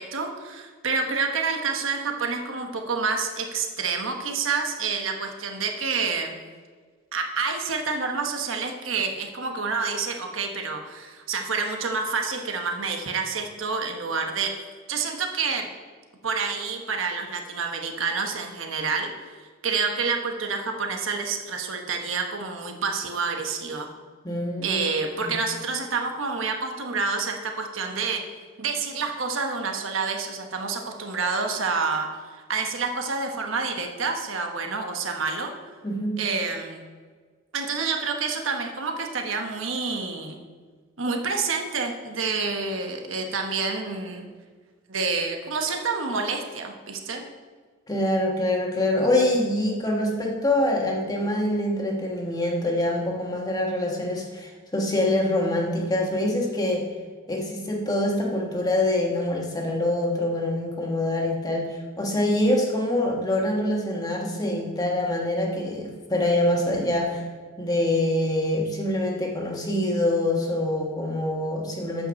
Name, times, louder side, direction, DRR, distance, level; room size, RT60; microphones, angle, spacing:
voice 1, 0.0-6.3 7.1-14.5 14.9-15.7 16.2-23.9 24.6-28.2 28.6-32.1 32.5-35.5 36.2-36.8 37.5-40.4 41.0-44.3 44.9-47.2, right 4 dB, 85° right, 3 dB, 1.1 m, -28 dB
voice 2, 24.2-24.8 25.2-25.3 35.8-36.2 47.9-56.9 57.3-67.2 67.6-72.1, left 1 dB, 20° left, 0 dB, 1.4 m, -25 dB
8.7 x 5.4 x 6.3 m, 1.6 s
head